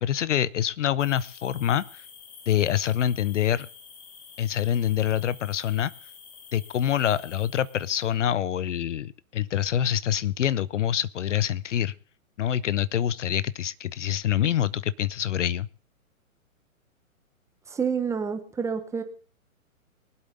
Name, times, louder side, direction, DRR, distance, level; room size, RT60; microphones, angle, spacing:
voice 1, 0.0-2.0 2.5-3.7 4.4-5.9 6.5-11.9 12.4-15.7, left 10 dB, 60° left, 20 dB, 0.7 m, -26 dB
sound 1, 1.0-8.2, left 6 dB, 40° left, 4.2 m, -48 dB
voice 2, 17.7-19.0, right 6 dB, 5° right, 8 dB, 0.8 m, -28 dB
23.0 x 8.1 x 3.7 m, 0.39 s
hypercardioid pair, 130°, 42 cm